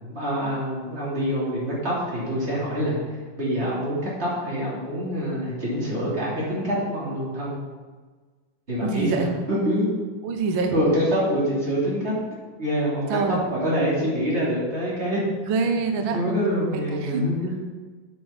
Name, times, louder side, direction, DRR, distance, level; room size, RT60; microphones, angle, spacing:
voice 1, 0.0-3.0 3.4-7.6 8.7-9.9 10.7-12.1 12.6-15.2 16.1-17.6, equal, 20° right, -7 dB, 2.9 m, -25 dB
voice 2, 8.8-9.3 10.2-10.8 13.1-13.4 15.4-16.2 16.9-17.3, right 4 dB, 80° right, 5 dB, 1.1 m, -25 dB
8.3 x 6.8 x 5.8 m, 1.4 s
omnidirectional pair, 3.6 m